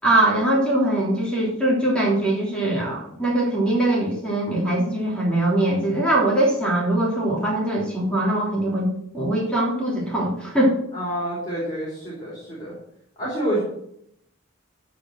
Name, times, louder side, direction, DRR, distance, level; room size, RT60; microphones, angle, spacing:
voice 1, 0.0-8.9 9.1-10.8, right 1 dB, 5° left, -4 dB, 3.3 m, -22 dB
voice 2, 10.9-12.7 13.2-13.6, right 1 dB, 20° left, -7 dB, 4.5 m, -28 dB
15.0 x 5.2 x 7.7 m, 0.75 s
head